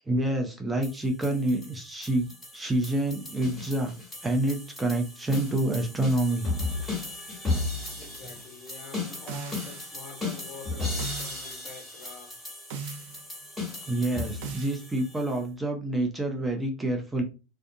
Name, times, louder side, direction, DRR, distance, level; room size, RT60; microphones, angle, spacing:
voice 1, 0.1-3.9 4.2-6.5 6.8-6.9 7.8-8.0 13.9-17.2, right 1 dB, 10° right, 0.5 m, -28 dB
sound 1, 0.8-15.4, left 3 dB, 5° left, 1.4 m, -36 dB
voice 2, 8.0-12.4, left 5 dB, 55° left, 0.9 m, -46 dB
sound 2, 9.3-10.1 11.0-11.7 12.7-13.3 14.4-14.7, right 6 dB, 70° right, 0.7 m, -38 dB
2.5 x 2.2 x 2.6 m
supercardioid pair, 140°, 0 cm